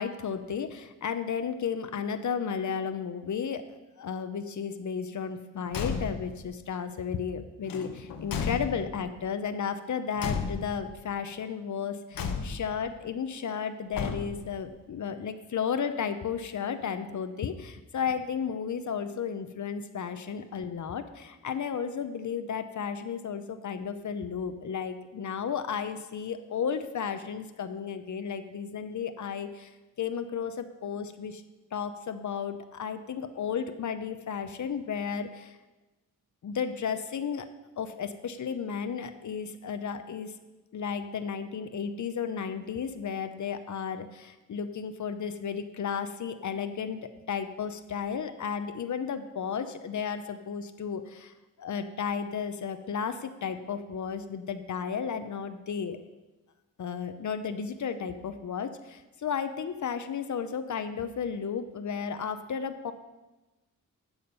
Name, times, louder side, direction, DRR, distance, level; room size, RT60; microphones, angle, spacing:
voice 1, 0.0-3.7 4.0-29.7 30.0-31.4 31.7-35.6 36.4-37.5 37.8-40.3 40.7-47.0 47.3-56.0 56.8-62.9, left 7 dB, 60° left, 9 dB, 0.7 m, -33 dB
Car / Truck / Slam, 5.7-6.4 7.7-9.1 10.2-11.0 12.1-12.8 13.9-14.6, left 5 dB, 85° left, 1.0 m, -34 dB
11.5 x 7.2 x 5.3 m, 1.1 s
wide cardioid pair, 110°, 33 cm